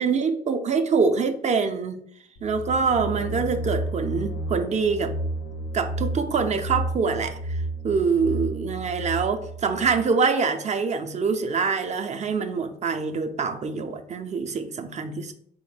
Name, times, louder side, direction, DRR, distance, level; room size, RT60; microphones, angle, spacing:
voice 1, 0.0-2.0 2.4-5.2 5.7-15.3, right 5 dB, 35° right, 7 dB, 0.4 m, -25 dB
sound 1, 2.4-10.1, right 1 dB, 85° left, 0.5 m, -32 dB
3.4 x 2.0 x 3.2 m, 0.66 s
cardioid pair, 90°, 20 cm